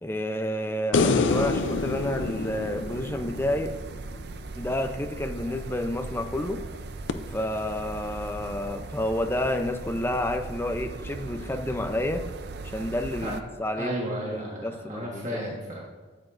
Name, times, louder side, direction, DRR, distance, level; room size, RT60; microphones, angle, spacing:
voice 1, 0.0-3.7 4.6-6.6 7.3-12.2 12.6-13.9 14.3-15.4, left 1 dB, 10° left, 6 dB, 0.5 m, -30 dB
sound 1, 0.9-4.3 7.1-7.2, left 4 dB, 70° left, 0.5 m, -27 dB
sound 2, 1.3-13.4, right 3 dB, 55° right, 0.5 m, -39 dB
voice 2, 13.8-15.8, equal, 40° right, -4 dB, 1.5 m, -33 dB
13.5 x 8.2 x 2.6 m, 1.3 s
head